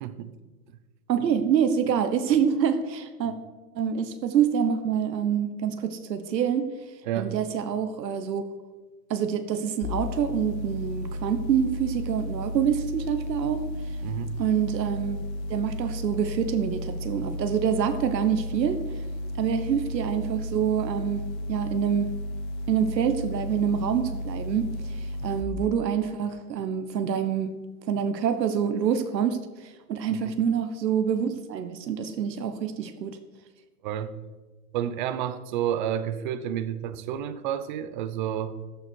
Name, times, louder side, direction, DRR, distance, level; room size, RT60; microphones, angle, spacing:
voice 1, 0.0-0.3 7.1-7.4 14.0-14.3 30.1-30.3 33.8-34.1 34.7-38.6, right 10 dB, 30° right, 13 dB, 0.6 m, -30 dB
voice 2, 1.1-3.3 3.7-6.7 7.2-8.4 9.1-13.6 14.4-15.2 15.5-18.8 19.4-22.1 22.7-24.7 25.0-27.5 27.9-33.2, right 8 dB, 80° right, 9 dB, 1.3 m, -26 dB
sound 1, 9.8-25.4, left 1 dB, 20° left, 0.8 m, -33 dB
15.0 x 9.5 x 4.6 m, 1.3 s
hypercardioid pair, 155°, 50 cm